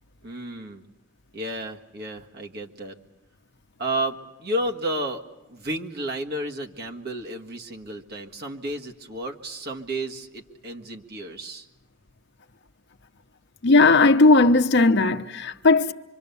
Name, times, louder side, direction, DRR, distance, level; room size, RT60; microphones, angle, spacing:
voice 1, 0.2-0.8 1.3-3.0 3.8-5.2 5.5-11.7, right 1 dB, 55° right, 1.7 m, -32 dB
voice 2, 13.6-15.9, left 3 dB, 60° left, 0.9 m, -17 dB
25.5 x 24.5 x 7.0 m
head